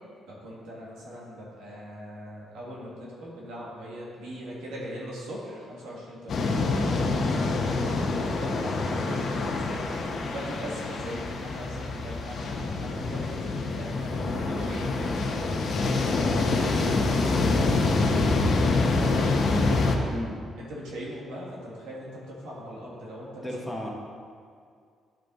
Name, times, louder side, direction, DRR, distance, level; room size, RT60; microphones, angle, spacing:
voice 1, 0.3-6.5 6.7-7.7 8.3-9.7 10.0-15.3 15.7-17.9 18.7-19.4 20.6-23.6, equal, 90° right, -5 dB, 2.1 m, -41 dB
sound 1, 6.3-20.0, left 3 dB, 55° left, 0.9 m, -26 dB
voice 2, 23.4-23.9, left 1 dB, 5° left, -2 dB, 1.3 m, -34 dB
11.0 x 4.5 x 4.0 m, 2.2 s
cardioid pair, 90°, 0 cm